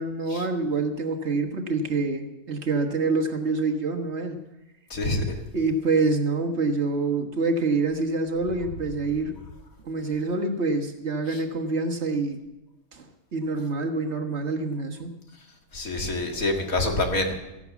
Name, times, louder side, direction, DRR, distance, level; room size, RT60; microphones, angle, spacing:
voice 1, 0.0-4.4 5.5-9.4 9.8-12.4 12.9-13.1 13.3-15.1, right 3 dB, 50° right, 3 dB, 1.6 m, -26 dB
voice 2, 4.9-5.4 11.3-11.4 15.7-17.4, left 2 dB, 70° left, 2 dB, 2.4 m, -26 dB
15.5 x 11.5 x 7.1 m, 0.98 s
omnidirectional pair, 1.5 m